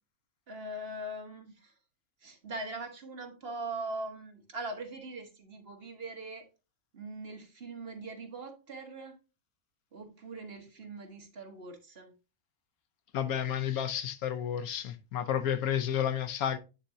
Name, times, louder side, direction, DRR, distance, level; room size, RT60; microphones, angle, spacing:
voice 1, 0.5-1.7 2.2-6.4 6.9-9.2 9.9-12.1, right 2 dB, 45° right, 1.3 m, -41 dB
voice 2, 13.1-16.6, left 9 dB, 85° left, 1.2 m, -31 dB
9.6 x 4.1 x 2.6 m
omnidirectional pair, 1.5 m